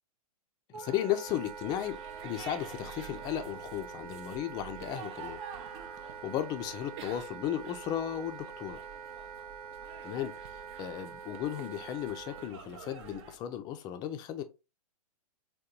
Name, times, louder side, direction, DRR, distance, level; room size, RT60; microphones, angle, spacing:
voice 1, 0.7-2.0 2.2-5.4 6.0-8.8 10.0-14.4, left 11 dB, 20° left, 0.4 m, -35 dB
Wind instrument woodwind instrument, 0.7-12.5, right 7 dB, 90° right, 0.7 m, -45 dB
sound 1, 1.3-13.4, right 6 dB, 50° right, 0.6 m, -49 dB
3.7 x 2.2 x 2.7 m
hypercardioid pair, 135°, 19 cm